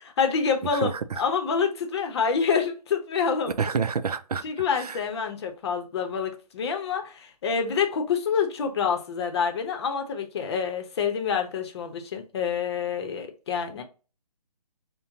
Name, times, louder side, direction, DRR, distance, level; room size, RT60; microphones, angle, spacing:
voice 1, 0.2-3.5 4.4-13.8, left 6 dB, 40° left, 0.8 m, -27 dB
voice 2, 0.7-1.2 3.6-4.4 4.7-5.0, right 6 dB, 70° right, 0.5 m, -28 dB
5.5 x 2.2 x 2.7 m
figure-of-eight pair, 145°, 20 cm